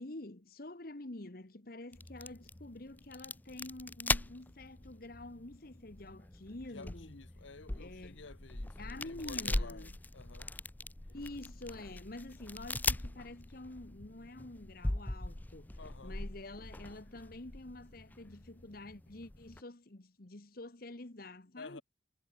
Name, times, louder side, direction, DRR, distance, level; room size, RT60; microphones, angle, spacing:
voice 1, 0.0-7.1 7.8-8.2 8.8-9.9 11.1-21.8, left 2 dB, 50° left, 1.4 m, -48 dB
sound 1, 1.9-19.6, left 2 dB, 10° left, 0.4 m, -41 dB
voice 2, 6.7-10.5 15.8-16.2 21.6-21.8, left 4 dB, 90° left, 1.2 m, -52 dB
head